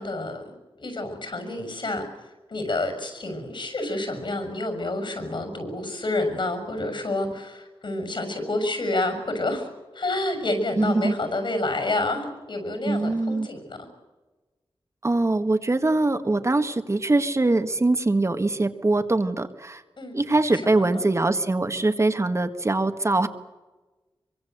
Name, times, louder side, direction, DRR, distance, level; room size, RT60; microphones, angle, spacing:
voice 1, 0.0-9.7 9.9-13.8 20.0-21.1, left 2 dB, 60° left, 6 dB, 6.5 m, -29 dB
voice 2, 10.8-11.1 12.8-13.5 15.0-19.8 20.1-23.3, right 2 dB, 30° right, 9 dB, 1.6 m, -23 dB
25.0 x 24.0 x 8.0 m, 1.2 s
wide cardioid pair, 100°, 9 cm